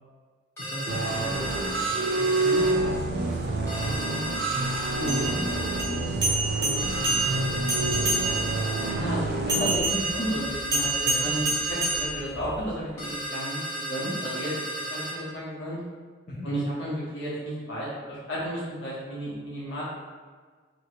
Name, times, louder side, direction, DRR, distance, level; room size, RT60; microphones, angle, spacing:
voice 1, 0.6-1.5 2.2-4.3 5.0-8.1 11.0-11.3 16.3-16.5, equal, 35° left, -6 dB, 0.4 m, -36 dB
sound 1, 0.6-2.8 3.7-5.9 6.8-9.0 9.9-12.1 13.0-15.2, right 1 dB, 15° left, 0.8 m, -34 dB
sound 2, 0.9-9.8, right 2 dB, 50° right, 0.4 m, -28 dB
sound 3, 5.0-8.7 9.5-12.7, right 2 dB, 20° right, 0.7 m, -28 dB
voice 2, 8.7-11.5 11.9-14.5 14.9-15.8 16.4-19.8, equal, 65° left, -8 dB, 0.9 m, -32 dB
2.9 x 2.6 x 2.8 m, 1.5 s
head